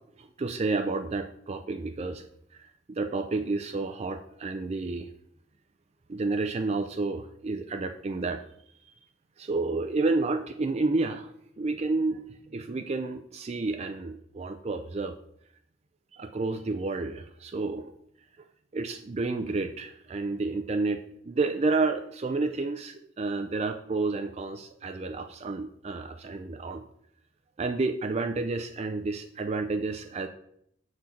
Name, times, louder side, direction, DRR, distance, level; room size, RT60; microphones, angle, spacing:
voice 1, 0.2-2.2 2.5-5.1 6.1-8.4 9.4-15.2 16.1-17.9 18.7-26.8 27.6-30.3, right 3 dB, 30° right, 7 dB, 0.3 m, -30 dB
7.4 x 3.8 x 5.7 m, 0.71 s
head